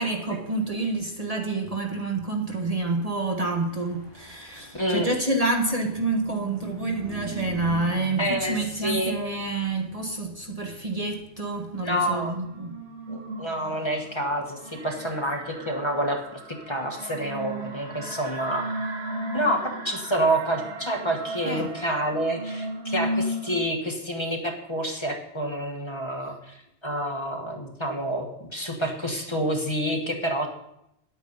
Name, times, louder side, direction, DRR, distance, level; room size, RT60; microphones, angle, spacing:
voice 1, 0.0-12.8 21.4-21.7, right 2 dB, 35° right, 3 dB, 1.1 m, -28 dB
Car passing by / Truck, 3.0-16.7, right 1 dB, 20° right, 5.2 m, -45 dB
voice 2, 4.7-5.1 8.2-9.1 11.8-12.4 13.1-18.6 19.3-26.6 26.8-30.5, right 1 dB, 25° left, 1 dB, 1.4 m, -28 dB
sound 1, 11.7-23.6, right 1 dB, 75° right, 1.4 m, -35 dB
10.0 x 8.6 x 5.4 m, 0.81 s
omnidirectional pair, 1.1 m